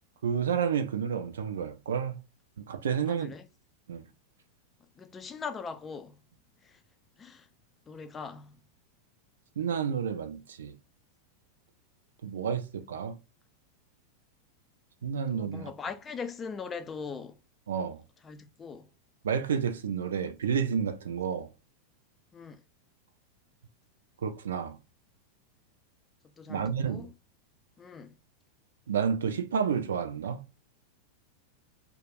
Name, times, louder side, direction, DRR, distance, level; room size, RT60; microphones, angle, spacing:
voice 1, 0.2-2.2 2.6-3.3 3.9-4.0 9.6-10.8 12.2-13.2 15.0-15.7 17.7-18.0 19.2-21.5 24.2-24.8 26.5-27.1 28.9-30.5, right 7 dB, 65° right, 0.4 m, -30 dB
voice 2, 3.1-3.5 5.0-6.2 6.6-6.8 7.2-7.5 7.9-8.6 15.3-17.4 18.2-18.9 22.3-22.6 26.2-27.1 27.8-28.1, left 5 dB, 20° left, 0.3 m, -41 dB
2.2 x 2.1 x 3.3 m
figure-of-eight pair, 90°, 0 cm